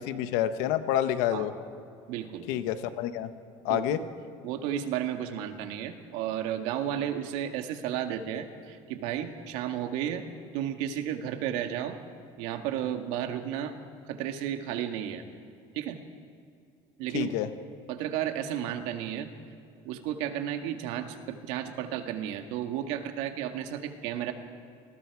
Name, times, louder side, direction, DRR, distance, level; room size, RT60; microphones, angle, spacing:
voice 1, 0.0-1.5 2.5-3.3 3.6-4.0 17.1-17.5, left 11 dB, 85° left, 10 dB, 1.3 m, -28 dB
voice 2, 2.1-2.5 3.7-4.0 4.4-10.2 10.5-12.0 12.4-13.7 14.1-15.2 15.7-16.0 17.0-17.4 17.9-19.3 19.9-24.3, right 10 dB, 80° right, 6 dB, 1.9 m, -33 dB
28.5 x 20.5 x 4.9 m, 2.4 s
cardioid pair, 145°, 12 cm